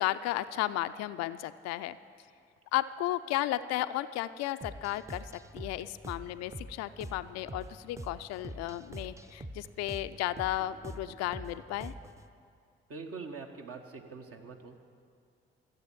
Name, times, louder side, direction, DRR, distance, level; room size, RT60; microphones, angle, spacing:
voice 1, 0.0-2.0 2.7-11.9, left 14 dB, 60° left, 12 dB, 0.5 m, -34 dB
sound 1, 4.6-12.3, right 1 dB, 10° right, 0.7 m, -45 dB
voice 2, 12.9-14.9, right 4 dB, 50° right, 3 dB, 1.4 m, -44 dB
13.5 x 8.0 x 8.9 m, 2.3 s
figure-of-eight pair, 40°, 29 cm